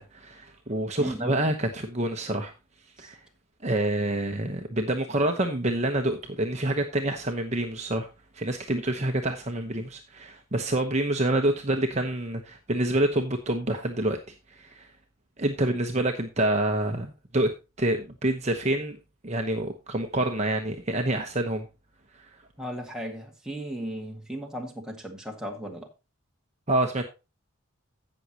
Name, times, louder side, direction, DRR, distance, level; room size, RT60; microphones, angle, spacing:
voice 1, 0.0-2.5 3.0-3.2 3.6-8.1 8.3-14.2 14.5-14.9 15.4-17.5 17.8-19.0 19.2-21.7 26.7-27.0, right 1 dB, 35° right, 1.0 m, -27 dB
voice 2, 1.0-1.3 3.0-3.1 22.6-25.9, equal, 5° right, 1.8 m, -36 dB
16.5 x 6.3 x 2.9 m
head